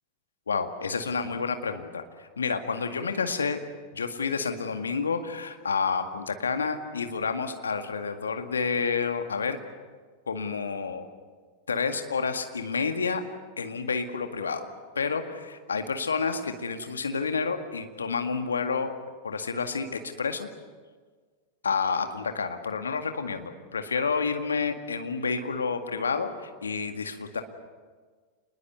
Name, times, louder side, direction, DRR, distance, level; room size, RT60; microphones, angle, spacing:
voice 1, 0.5-3.6 3.9-9.6 10.3-11.1 11.7-13.2 13.6-14.7 15.0-18.9 19.2-20.5 21.6-27.4, left 5 dB, 70° left, 7 dB, 2.0 m, -29 dB
27.0 x 21.0 x 8.2 m, 1.5 s
figure-of-eight pair, 90°, 0 cm